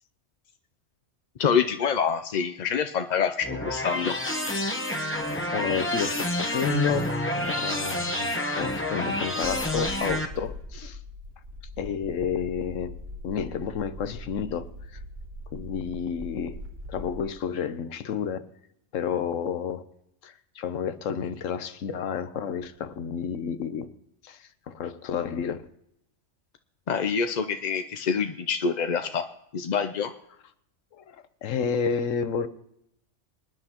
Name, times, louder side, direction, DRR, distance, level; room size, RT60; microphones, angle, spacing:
voice 1, 1.4-4.1 26.9-29.3 29.5-30.1, left 6 dB, 55° left, 0.5 m, -26 dB
sound 1, 3.4-10.2, left 1 dB, 10° left, 0.8 m, -28 dB
voice 2, 5.0-11.0 11.8-12.9 13.2-14.7 14.9-15.0 15.5-16.6 16.9-18.5 18.9-19.8 20.2-23.9 24.2-25.6 31.0-32.5, left 7 dB, 85° left, 1.2 m, -31 dB
sound 2, 9.4-17.2, left 1 dB, 60° right, 2.6 m, -41 dB
25.5 x 9.8 x 2.9 m
omnidirectional pair, 1.3 m